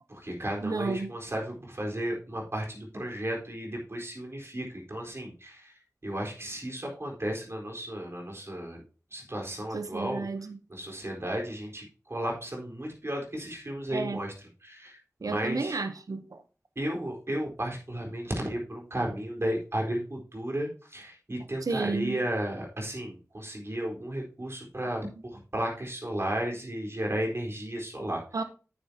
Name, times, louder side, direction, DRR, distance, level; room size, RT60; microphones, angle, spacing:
voice 1, 0.1-5.7 6.0-8.8 9.1-10.3 10.7-14.3 14.6-15.8 16.8-28.2, right 1 dB, 45° right, 4.2 m, -34 dB
voice 2, 0.6-1.1 9.7-10.6 13.9-14.2 15.2-16.4 21.6-22.2 28.3-28.4, right 3 dB, 80° right, 0.8 m, -32 dB
9.5 x 9.0 x 2.8 m
cardioid pair, 40°, 6 cm